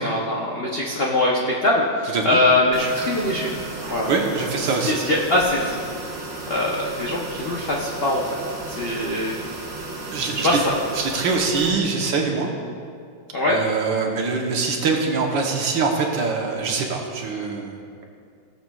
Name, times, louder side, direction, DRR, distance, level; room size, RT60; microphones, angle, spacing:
voice 1, 0.0-1.9 2.2-3.5 3.9-4.1 4.9-5.8 6.5-8.2 8.7-9.4 10.4-10.6 13.3-13.6, left 2 dB, 60° left, -4 dB, 0.6 m, -22 dB
voice 2, 2.1-2.4 4.1-5.0 8.7-8.9 10.1-10.5 10.9-12.5 13.5-17.8, right 4 dB, 65° right, 1 dB, 1.7 m, -24 dB
sound 1, 2.7-11.7, right 2 dB, 40° right, 1.2 m, -34 dB
17.5 x 7.0 x 2.3 m, 2.3 s
omnidirectional pair, 2.3 m